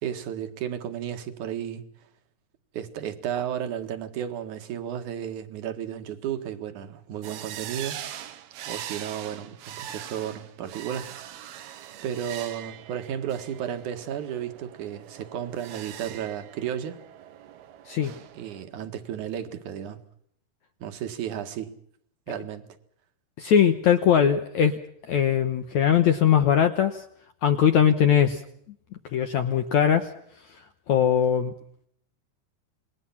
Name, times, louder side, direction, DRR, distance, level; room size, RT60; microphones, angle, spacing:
voice 1, 0.0-1.8 2.7-8.0 8.6-11.1 12.0-17.0 18.3-20.0 20.8-21.7 22.3-22.6, right 9 dB, 55° right, 7 dB, 2.9 m, -33 dB
sound 1, 7.2-18.7, right 11 dB, 75° right, 3.1 m, -42 dB
voice 2, 23.4-24.8 25.1-27.0 27.4-28.4 29.1-30.1 30.9-31.5, left 8 dB, 65° left, 7 dB, 1.9 m, -21 dB
27.5 x 21.0 x 5.8 m, 0.68 s
omnidirectional pair, 4.7 m